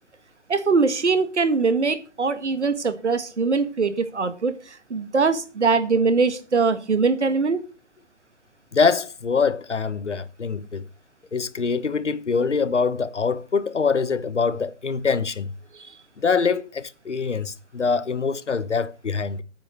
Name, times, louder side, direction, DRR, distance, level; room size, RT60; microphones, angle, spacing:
voice 1, 0.5-7.6 15.8-15.9, right 4 dB, 70° right, 1.9 m, -22 dB
voice 2, 8.7-10.8 11.3-15.5 16.2-19.4, left 5 dB, 80° left, 1.2 m, -24 dB
9.0 x 8.7 x 6.5 m
figure-of-eight pair, 135°, 35 cm